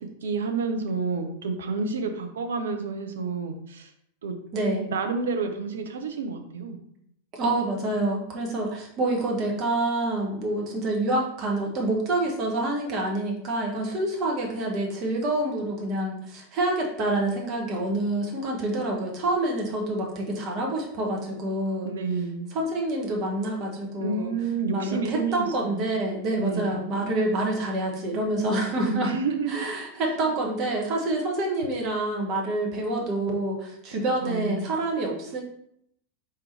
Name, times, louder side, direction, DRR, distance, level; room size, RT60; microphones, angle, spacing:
voice 1, 0.2-3.9 4.2-4.3 4.9-6.8 21.8-22.5 24.0-25.8 26.4-26.7 28.8-29.7 30.0-30.3 33.9-34.7, right 4 dB, 65° right, 5 dB, 0.7 m, -30 dB
voice 2, 4.5-4.9 7.3-21.9 22.5-24.3 24.7-29.1 29.5-35.4, right 2 dB, 35° right, 0 dB, 1.2 m, -27 dB
4.4 x 3.6 x 3.3 m, 0.71 s
figure-of-eight pair, 90°, 0 cm